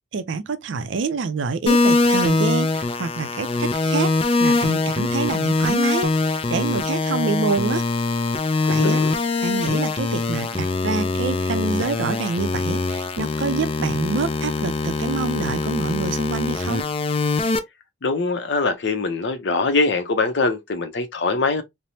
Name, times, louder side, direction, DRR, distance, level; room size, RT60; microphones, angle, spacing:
voice 1, 0.1-4.1 4.4-7.8 8.7-9.0 9.4-16.8, right 4 dB, 80° right, 0.4 m, -26 dB
sound 1, 1.7-17.6, left 3 dB, 30° left, 0.4 m, -23 dB
voice 2, 8.6-9.2 18.0-21.6, left 3 dB, 70° left, 0.6 m, -23 dB
3.2 x 2.0 x 2.7 m
head